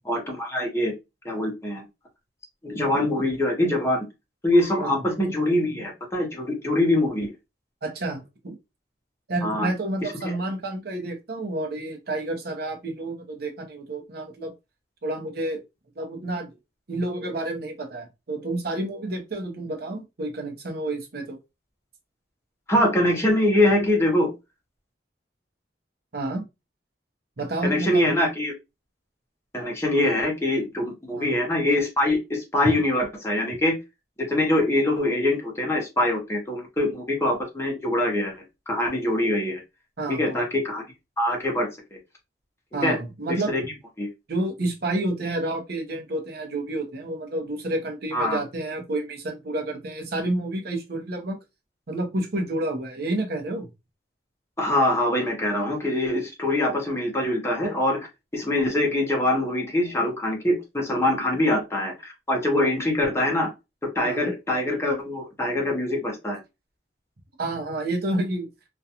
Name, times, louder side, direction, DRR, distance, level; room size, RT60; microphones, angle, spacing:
voice 1, 0.0-0.9 1.2-1.8 2.6-4.0 4.4-7.3 9.4-9.7 10.0-10.1 22.7-24.3 27.6-28.5 29.5-33.8 34.3-39.6 40.1-40.8 41.2-42.0 42.8-43.0 43.3-43.6 44.0-44.1 48.1-48.4 54.6-58.1 58.3-63.5 63.9-66.4, left 1 dB, 15° left, 0.8 m, -24 dB
voice 2, 7.8-8.6 9.3-14.5 15.0-15.6 16.0-16.5 16.9-21.4 26.1-26.4 27.4-28.1 31.2-31.4 40.0-40.4 42.7-43.5 44.3-51.4 51.9-53.7 64.0-64.3 67.4-68.5, right 2 dB, 60° right, 0.7 m, -29 dB
2.4 x 2.2 x 2.8 m
head